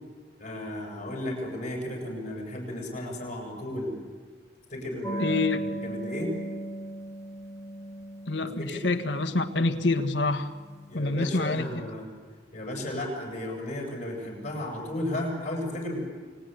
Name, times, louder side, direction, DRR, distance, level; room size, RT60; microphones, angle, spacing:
voice 1, 0.4-4.0 4.7-5.4 5.8-6.3 8.6-8.9 10.9-12.1 12.5-16.0, left 1 dB, 40° left, 1 dB, 7.5 m, -34 dB
sound 1, 5.0-11.2, right 1 dB, 15° left, 3.2 m, -38 dB
voice 2, 5.2-5.6 8.3-10.5 10.9-11.7, left 3 dB, 75° left, 7 dB, 1.6 m, -26 dB
29.5 x 20.5 x 9.3 m, 1.5 s
head